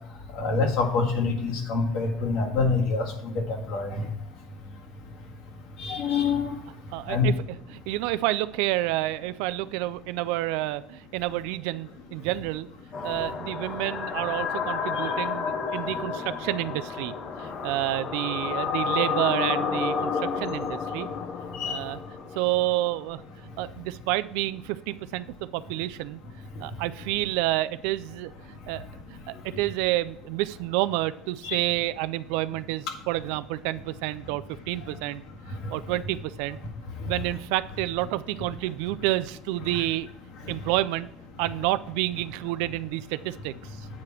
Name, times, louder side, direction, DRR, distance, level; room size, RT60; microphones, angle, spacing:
voice 1, 0.4-4.0 5.8-6.6 7.1-7.3 21.6-21.8 29.5-29.6 31.4-31.6, left 4 dB, 55° left, 2 dB, 1.8 m, -26 dB
voice 2, 6.9-7.3 7.7-12.7 13.0-21.1 21.6-22.0 22.4-23.2 23.6-25.3 25.5-26.2 26.6-28.9 29.3-35.2 35.7-36.6 37.0-40.1 40.5-41.1 41.4-43.9, right 17 dB, 75° right, 13 dB, 0.3 m, -29 dB
sound 1, 12.9-23.0, left 6 dB, 35° left, 0.8 m, -31 dB
8.3 x 4.9 x 5.8 m, 0.81 s
cardioid pair, 170°, 0 cm